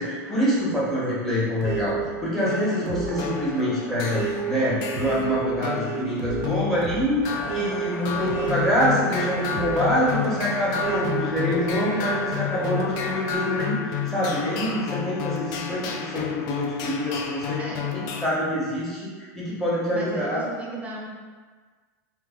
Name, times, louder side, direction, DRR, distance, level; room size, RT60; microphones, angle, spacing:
voice 1, 0.0-17.6 17.9-20.4, equal, 5° left, -8 dB, 1.2 m, -26 dB
sound 1, 1.6-12.7 13.3-14.8, right 6 dB, 85° right, 0.4 m, -33 dB
sound 2, 2.4-18.3, left 8 dB, 50° left, 0.4 m, -31 dB
sound 3, 7.2-13.2, left 1 dB, 30° left, 1.1 m, -38 dB
voice 2, 17.6-18.0 19.9-21.1, right 2 dB, 15° right, -3 dB, 0.7 m, -35 dB
3.2 x 2.2 x 3.6 m, 1.5 s
supercardioid pair, 130°, 9 cm